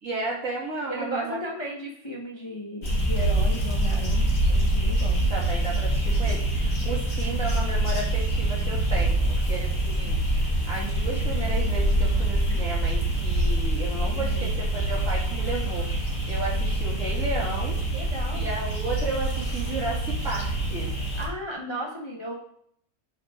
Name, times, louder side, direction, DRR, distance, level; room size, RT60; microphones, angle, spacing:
voice 1, 0.0-1.4 5.3-15.9 16.3-17.8 18.3-20.9, right 2 dB, 55° right, -4 dB, 2.7 m, -33 dB
voice 2, 0.9-5.2 14.1-14.6 17.9-18.5 21.2-22.3, equal, 20° left, -1 dB, 0.9 m, -35 dB
sound 1, 2.8-21.3, right 1 dB, 55° left, 2.4 m, -25 dB
10.0 x 5.5 x 3.6 m, 0.66 s
omnidirectional pair, 1.6 m